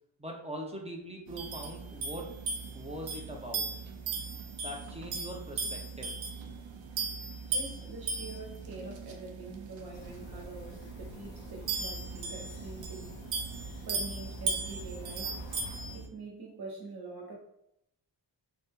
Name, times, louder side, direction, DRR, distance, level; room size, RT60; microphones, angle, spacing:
voice 1, 0.2-2.3 2.7-3.7 4.6-6.1, equal, 15° right, 1 dB, 0.5 m, -42 dB
sound 1, 1.3-16.1, right 4 dB, 80° right, 0.6 m, -38 dB
voice 2, 7.5-13.2 13.8-15.3 15.9-17.4, right 3 dB, 60° right, -2 dB, 1.0 m, -45 dB
sound 2, 9.9-16.0, left 1 dB, 85° left, 0.7 m, -48 dB
2.7 x 2.0 x 3.5 m, 0.78 s
wide cardioid pair, 85°, 44 cm